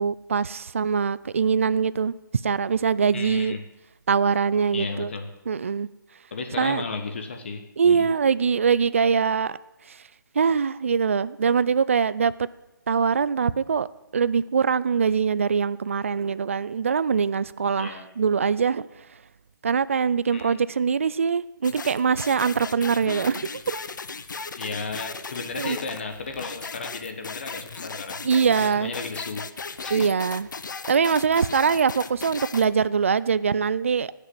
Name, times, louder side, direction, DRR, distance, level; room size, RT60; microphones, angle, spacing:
voice 1, 0.0-2.1 2.4-3.6 4.1-5.1 5.5-5.9 6.6-6.8 7.8-9.6 9.9-10.0 10.4-12.5 12.9-13.9 14.1-18.9 19.6-23.8 25.6-25.8 28.2-28.9 29.9-30.5 30.9-34.1, right 6 dB, 40° right, 17 dB, 0.4 m, -23 dB
voice 2, 3.1-3.6 4.7-5.3 6.3-8.1 17.8-18.1 20.3-20.6 24.6-28.2 28.6-29.5 29.8-30.1, left 4 dB, 35° left, 6 dB, 1.1 m, -34 dB
sound 1, 21.6-32.7, left 5 dB, 65° left, 0.9 m, -36 dB
16.5 x 6.8 x 7.7 m, 1.0 s
hypercardioid pair, 175°, 11 cm